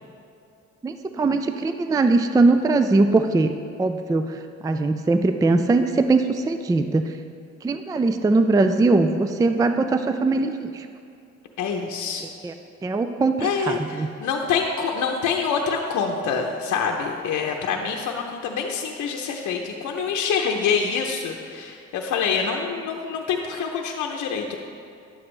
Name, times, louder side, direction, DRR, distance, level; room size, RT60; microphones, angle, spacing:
voice 1, 0.8-3.5 3.8-7.1 7.6-10.9 12.4-12.5 12.8-14.1, right 3 dB, 10° right, 8 dB, 0.3 m, -21 dB
voice 2, 11.6-12.2 13.4-24.6, left 6 dB, 75° left, 1 dB, 0.7 m, -26 dB
10.5 x 7.8 x 3.2 m, 2.5 s
cardioid pair, 90°, 30 cm